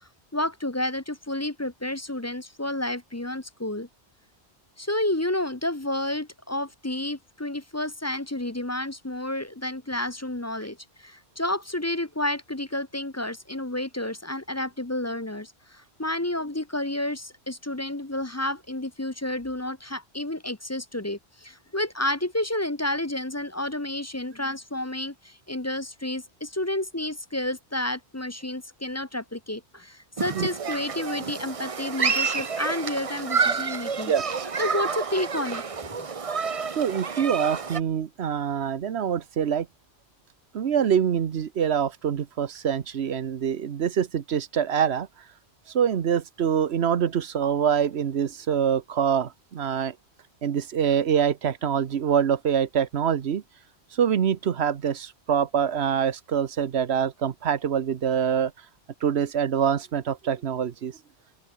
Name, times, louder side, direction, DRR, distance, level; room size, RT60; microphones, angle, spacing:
voice 1, 0.3-3.9 4.8-34.1 34.6-36.1, left 1 dB, 15° left, 0.9 m, -30 dB
Human group actions, 30.2-37.8, right 5 dB, 35° right, 0.8 m, -29 dB
voice 2, 30.3-30.8 34.1-34.5 36.8-39.7 40.5-45.1 45.7-50.0 50.4-53.4 53.9-58.5 59.0-61.0, right 8 dB, 75° right, 1.2 m, -25 dB
open air
omnidirectional pair, 1.1 m